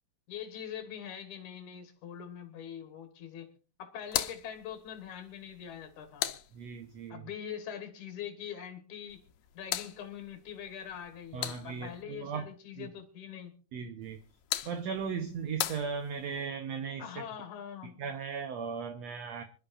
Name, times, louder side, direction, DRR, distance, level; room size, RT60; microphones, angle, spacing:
voice 1, 0.3-3.5 3.8-6.3 7.1-9.2 9.5-13.5 17.0-18.0, left 9 dB, 65° left, 2.9 m, -43 dB
sound 1, 4.0-7.1 9.1-12.0 14.0-16.5, left 13 dB, 85° left, 2.6 m, -39 dB
voice 2, 6.5-7.2 11.3-12.5 12.8-12.9 13.7-14.2 14.7-17.2 18.0-19.4, right 6 dB, 65° right, 1.9 m, -37 dB
26.0 x 12.0 x 2.6 m
omnidirectional pair, 3.8 m